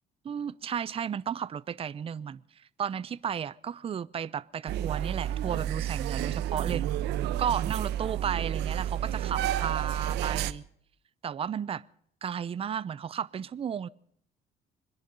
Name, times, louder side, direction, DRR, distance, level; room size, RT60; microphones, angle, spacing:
voice 1, 0.2-6.8 7.4-10.6 11.2-11.8 12.2-13.9, right 8 dB, 35° right, 0.6 m, -33 dB
sound 1, 4.7-10.5, right 11 dB, 85° right, 0.9 m, -30 dB
25.0 x 10.5 x 5.3 m
cardioid pair, 110°, 17 cm